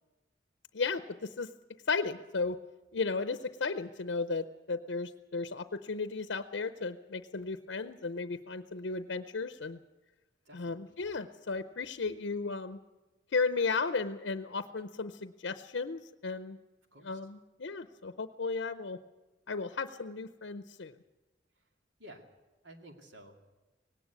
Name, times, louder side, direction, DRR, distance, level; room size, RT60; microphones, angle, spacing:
voice 1, 0.7-1.5 1.9-2.6 2.9-9.8 10.5-12.8 13.3-16.6 17.0-19.0 19.5-20.9, left 4 dB, 75° left, 11 dB, 0.7 m, -35 dB
voice 2, 10.5-10.8 16.9-17.2 22.0-22.3 22.6-23.4, right 1 dB, 85° right, 4 dB, 2.4 m, -52 dB
18.5 x 17.0 x 8.3 m, 1.1 s
head